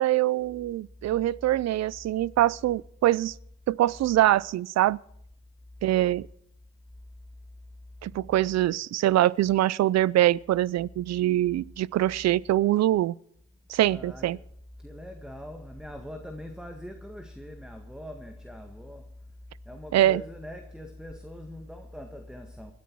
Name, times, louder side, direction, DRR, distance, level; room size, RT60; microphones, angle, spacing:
voice 1, 0.0-3.3 3.7-5.0 5.8-6.3 8.0-13.2 13.7-14.4 19.9-20.2, right 14 dB, 60° right, 0.5 m, -24 dB
voice 2, 13.9-14.4 14.8-19.2 19.7-22.7, left 1 dB, ahead, 1.8 m, -42 dB
20.5 x 13.5 x 4.7 m
cardioid pair, 90°, 30 cm